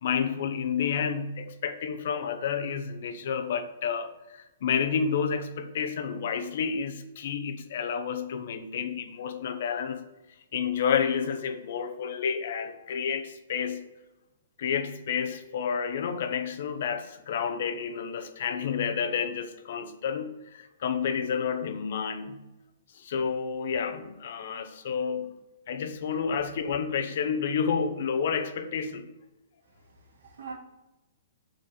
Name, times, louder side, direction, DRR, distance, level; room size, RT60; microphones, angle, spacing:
voice 1, 0.0-10.0 10.5-13.9 14.6-22.4 22.9-25.3 25.7-29.1, left 6 dB, 55° left, 8 dB, 0.9 m, -30 dB
voice 2, 29.6-30.5, right 5 dB, 85° right, -4 dB, 1.9 m, -44 dB
7.3 x 4.5 x 6.8 m, 0.98 s
hypercardioid pair, 165°, 0 cm